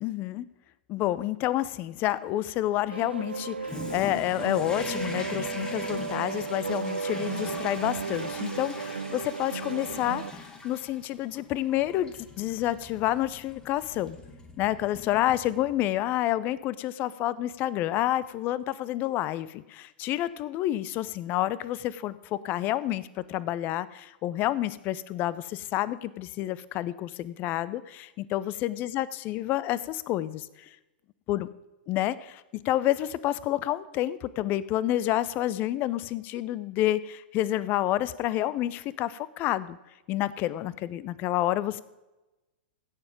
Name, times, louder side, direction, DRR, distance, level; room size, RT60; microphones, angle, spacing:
voice 1, 0.0-0.5 0.9-14.2 14.6-30.7 31.3-31.5 31.9-39.8 40.1-41.8, left 14 dB, 35° left, 18 dB, 0.6 m, -29 dB
sound 1, 2.9-10.3, right 5 dB, 85° right, 0.5 m, -34 dB
Toilet flush, 3.6-16.0, left 3 dB, 15° left, 1.6 m, -43 dB
16.5 x 7.1 x 5.2 m, 1.0 s
figure-of-eight pair, 105°, 6 cm